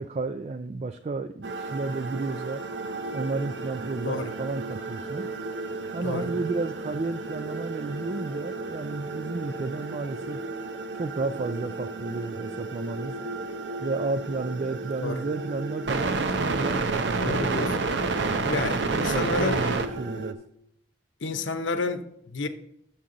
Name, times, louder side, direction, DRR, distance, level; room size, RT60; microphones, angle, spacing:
voice 1, 0.0-2.6 3.1-5.3 5.9-10.4 10.9-13.2 13.8-17.8 18.5-20.4, right 3 dB, 35° right, 0.3 m, -32 dB
sound 1, 1.4-20.3, right 3 dB, 65° right, 0.7 m, -31 dB
voice 2, 17.2-17.9 18.4-19.6 21.2-22.5, left 3 dB, 80° left, 0.8 m, -30 dB
9.9 x 7.2 x 3.8 m
head